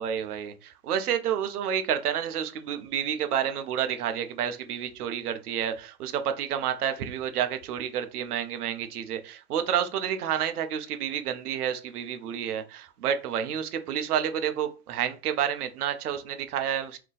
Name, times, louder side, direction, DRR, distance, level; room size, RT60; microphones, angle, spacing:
voice 1, 0.0-17.0, right 9 dB, 75° right, 0.7 m, -29 dB
2.4 x 2.2 x 3.9 m
hypercardioid pair, 95°, 46 cm